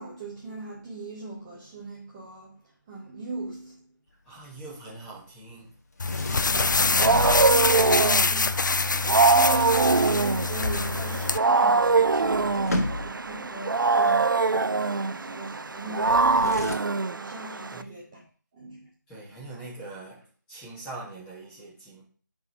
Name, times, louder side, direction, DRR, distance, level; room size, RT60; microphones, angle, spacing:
voice 1, 0.0-2.6 2.9-3.8 6.7-6.9 7.5-8.5 9.3-18.2 18.5-18.9, right 3 dB, 15° right, 0.7 m, -37 dB
voice 2, 4.2-5.8 17.7-17.9 19.1-22.0, right 2 dB, 10° left, 1.9 m, -43 dB
sound 1, 6.0-11.4, left 4 dB, 65° left, 0.4 m, -25 dB
Sliding door, 6.0-8.0 11.5-11.6 11.8-13.4 16.0-16.8, left 2 dB, 50° left, 1.0 m, -32 dB
Wild animals, 6.6-17.8, right 4 dB, 75° right, 0.4 m, -23 dB
8.8 x 3.8 x 4.7 m
figure-of-eight pair, 160°, 11 cm